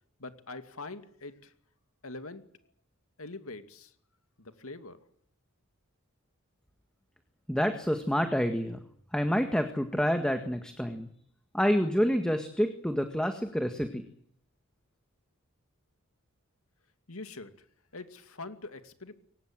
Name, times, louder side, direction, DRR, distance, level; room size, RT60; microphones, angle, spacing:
voice 1, 0.2-1.5 2.0-2.4 3.2-3.9 4.4-5.0 17.1-17.7 17.9-19.1, left 3 dB, 75° left, 9 dB, 2.5 m, -43 dB
voice 2, 7.5-8.8 9.1-11.1 11.5-14.0, equal, 5° left, 7 dB, 1.8 m, -28 dB
23.0 x 19.5 x 9.0 m, 0.63 s
head